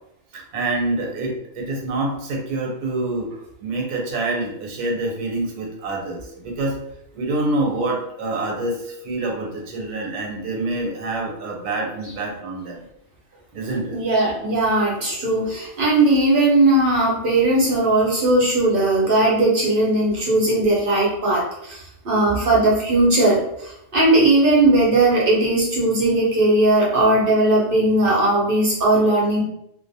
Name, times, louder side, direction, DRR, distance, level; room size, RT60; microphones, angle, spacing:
voice 1, 0.3-6.7 7.1-12.8 13.5-14.0, right 2 dB, 80° right, 0 dB, 1.2 m, -26 dB
voice 2, 13.9-29.4, right 2 dB, 50° right, -5 dB, 0.7 m, -18 dB
2.6 x 2.1 x 2.6 m, 0.77 s
omnidirectional pair, 1.7 m